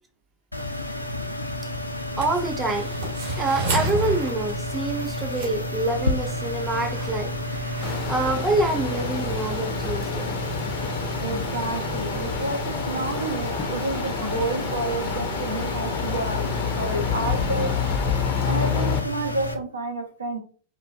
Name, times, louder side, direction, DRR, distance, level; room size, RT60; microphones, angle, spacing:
sound 1, 0.5-19.5, left 1 dB, 85° left, 0.4 m, -31 dB
voice 1, 2.2-2.9 3.4-7.3 8.1-10.4, right 2 dB, 15° right, 6 dB, 0.5 m, -26 dB
sound 2, 2.2-8.1, right 3 dB, 55° right, 1.7 m, -33 dB
sound 3, 7.8-19.0, left 7 dB, 30° left, 0.5 m, -29 dB
voice 2, 11.2-16.5 16.8-17.7 18.4-20.4, right 2 dB, 75° right, 2 dB, 0.7 m, -30 dB
4.3 x 2.5 x 2.3 m, 0.41 s
figure-of-eight pair, 90°, 0 cm